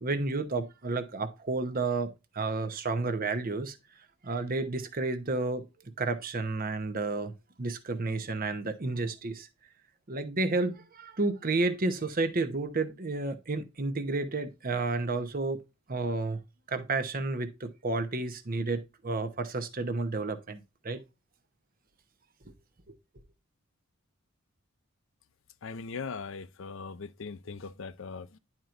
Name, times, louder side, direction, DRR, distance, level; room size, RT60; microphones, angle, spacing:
voice 1, 0.0-3.8 4.2-5.6 6.0-7.3 7.6-9.5 10.1-15.6 15.9-16.4 16.7-21.0, right 3 dB, 40° right, 0.9 m, -31 dB
voice 2, 25.6-28.4, left 5 dB, 60° left, 0.5 m, -40 dB
11.0 x 4.5 x 2.5 m
head